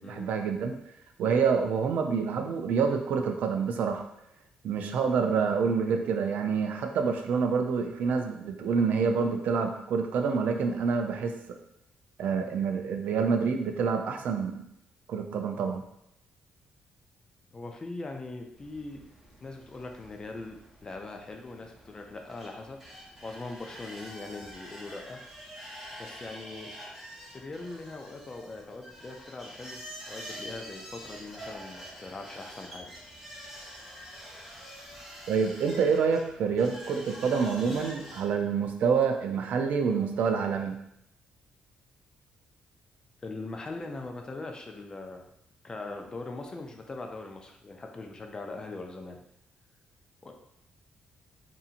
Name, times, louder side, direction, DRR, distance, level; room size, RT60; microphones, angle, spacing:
voice 1, 0.0-0.7 1.2-4.1 4.6-11.3 12.2-14.6 15.1-15.8 35.3-40.7, right 5 dB, 70° right, 5 dB, 0.3 m, -27 dB
voice 2, 17.5-19.0 19.4-22.8 23.2-25.2 26.0-26.7 27.3-29.8 30.1-32.9 43.2-45.2 45.6-49.2 50.2-50.3, left 3 dB, 25° left, 3 dB, 0.3 m, -41 dB
sound 1, 18.5-38.2, equal, ahead, 0.9 m, -46 dB
2.7 x 2.6 x 2.4 m, 0.77 s
cardioid pair, 120°, 3 cm